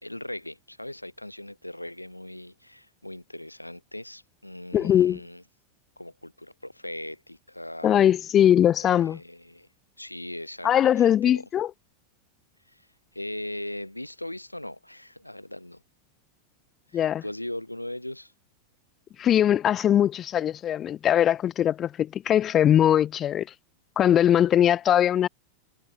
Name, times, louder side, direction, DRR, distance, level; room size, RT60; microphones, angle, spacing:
voice 1, 0.0-5.4 6.0-8.0 8.8-9.7 10.0-11.4 12.7-15.8 16.9-18.3, left 1 dB, 85° left, 3.5 m, -39 dB
voice 2, 4.7-5.2 7.8-9.2 10.6-11.7 16.9-17.2 19.2-23.5 24.0-25.3, left 10 dB, 30° left, 0.8 m, -21 dB
figure-of-eight pair, 90°, 0 cm